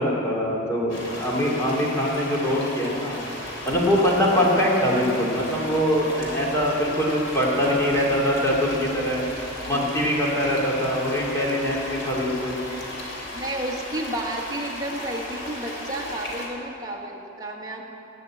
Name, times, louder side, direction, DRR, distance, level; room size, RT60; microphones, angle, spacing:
voice 1, 0.0-3.2 3.6-9.3 9.6-12.6, equal, 15° left, -4 dB, 2.6 m, -23 dB
sound 1, 0.9-16.5, left 1 dB, 65° left, 3.3 m, -35 dB
voice 2, 13.3-17.8, right 1 dB, 20° right, -2 dB, 1.6 m, -31 dB
18.0 x 7.0 x 8.6 m, 2.8 s
head